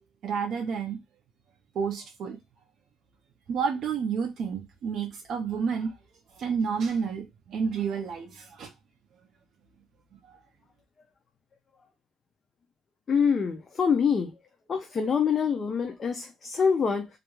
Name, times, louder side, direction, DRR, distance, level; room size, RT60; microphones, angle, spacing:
voice 1, 0.2-1.0 1.7-2.4 3.5-6.0 6.3-8.7 10.3-10.4, right 6 dB, 45° right, 0.4 m, -30 dB
voice 2, 13.1-14.3 14.7-17.1, left 6 dB, 25° left, 0.3 m, -25 dB
2.3 x 2.1 x 2.9 m
cardioid pair, 160°, 0 cm